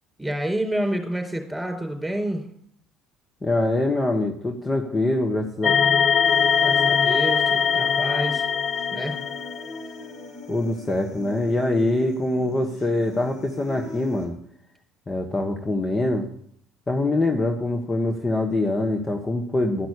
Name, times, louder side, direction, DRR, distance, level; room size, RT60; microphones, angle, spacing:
voice 1, 0.2-2.5 6.6-8.5 8.9-9.2, right 1 dB, 10° right, 3 dB, 4.6 m, -28 dB
voice 2, 3.4-5.7 10.5-14.3 15.1-16.3 16.9-19.9, left 2 dB, 25° left, 4 dB, 1.4 m, -24 dB
sound 1, 5.6-9.9, left 6 dB, 40° left, 0.7 m, -21 dB
Human voice, 6.3-14.2, left 2 dB, 60° left, 4.0 m, -41 dB
13.0 x 6.1 x 8.3 m, 0.65 s
hypercardioid pair, 65°, 0 cm